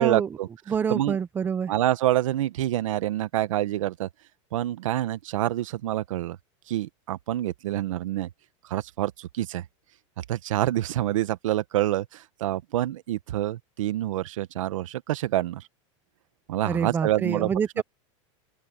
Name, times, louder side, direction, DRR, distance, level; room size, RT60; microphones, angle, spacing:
voice 1, 0.0-0.5 0.9-1.2 1.7-4.1 4.5-6.4 6.7-8.3 8.7-9.6 10.3-15.6 16.5-17.8, right 14 dB, 85° right, 1.2 m, -27 dB
voice 2, 0.7-1.7 16.7-17.8, right 7 dB, 10° right, 0.6 m, -26 dB
open air
supercardioid pair, 170°, 16 cm